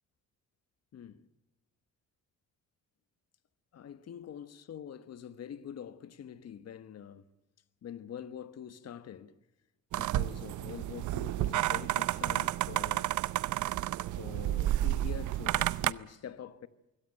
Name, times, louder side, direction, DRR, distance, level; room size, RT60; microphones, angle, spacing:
voice 1, 0.9-1.3 3.7-7.3 7.8-9.4 9.9-13.1 14.2-16.7, left 9 dB, 55° left, 1.3 m, -45 dB
sound 1, 9.9-15.9, right 15 dB, 75° right, 0.7 m, -31 dB
23.0 x 17.0 x 9.0 m
cardioid pair, 90°, 30 cm